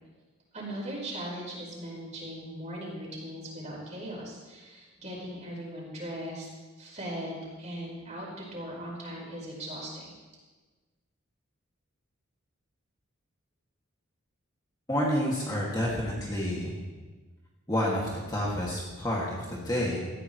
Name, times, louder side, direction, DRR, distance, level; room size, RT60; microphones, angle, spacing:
voice 1, 0.5-6.5 6.8-10.1, equal, 35° right, -4 dB, 4.8 m, -39 dB
voice 2, 14.9-16.8 17.7-20.1, equal, 20° left, -4 dB, 2.3 m, -29 dB
18.0 x 15.0 x 3.2 m, 1.3 s
head